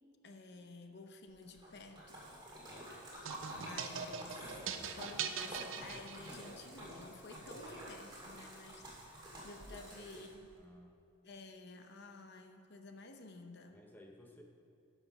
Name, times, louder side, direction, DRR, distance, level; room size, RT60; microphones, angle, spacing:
voice 1, 0.2-2.3 3.6-4.6 4.9-10.5 11.2-13.8, left 3 dB, 50° left, 6 dB, 0.7 m, -53 dB
Splash splatter, 1.4-10.5, right 1 dB, 20° right, 1.9 m, -49 dB
sound 1, 3.3-6.6, right 7 dB, 65° right, 0.6 m, -42 dB
voice 2, 9.7-11.1 13.7-14.4, left 1 dB, 10° left, 1 dB, 0.6 m, -58 dB
12.0 x 5.8 x 5.4 m, 2.5 s
head